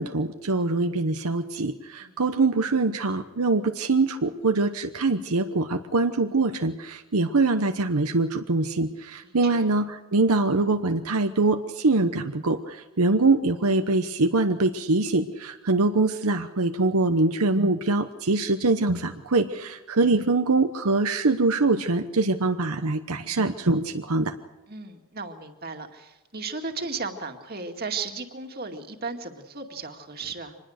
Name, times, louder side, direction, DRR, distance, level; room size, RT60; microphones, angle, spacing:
voice 1, 0.0-24.3, right 3 dB, 80° right, 7 dB, 1.0 m, -23 dB
voice 2, 9.2-9.7 24.7-30.6, right 4 dB, 45° right, 4 dB, 2.2 m, -35 dB
25.5 x 20.5 x 6.5 m, 1.1 s
head